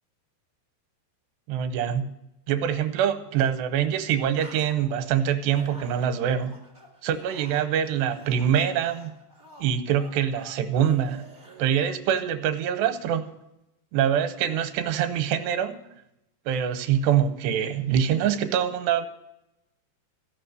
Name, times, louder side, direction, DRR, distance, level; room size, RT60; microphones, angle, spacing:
voice 1, 1.5-2.1 2.5-6.6 7.0-9.1 9.6-11.2 11.6-13.3 13.9-15.8 16.5-19.1, right 9 dB, 90° right, 10 dB, 2.9 m, -24 dB
sound 1, 3.8-3.9 4.1-5.1 5.5-11.7, right 1 dB, 30° right, 0.3 m, -50 dB
15.5 x 5.8 x 8.0 m, 0.87 s
omnidirectional pair, 4.7 m